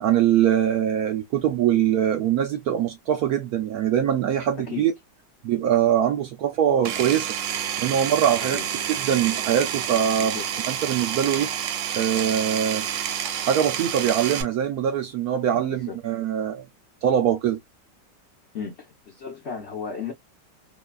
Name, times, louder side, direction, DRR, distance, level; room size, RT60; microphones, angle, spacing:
voice 1, 0.0-4.9 5.4-7.3 7.8-8.6 8.9-10.4 10.7-11.5 11.9-12.8 13.5-16.6 17.0-17.6, right 9 dB, 70° right, 0.9 m, -23 dB
Power tool, 6.8-14.4, right 9 dB, 85° right, 1.3 m, -29 dB
voice 2, 18.5-20.1, left 6 dB, 55° left, 0.8 m, -34 dB
3.1 x 2.2 x 2.3 m
omnidirectional pair, 1.9 m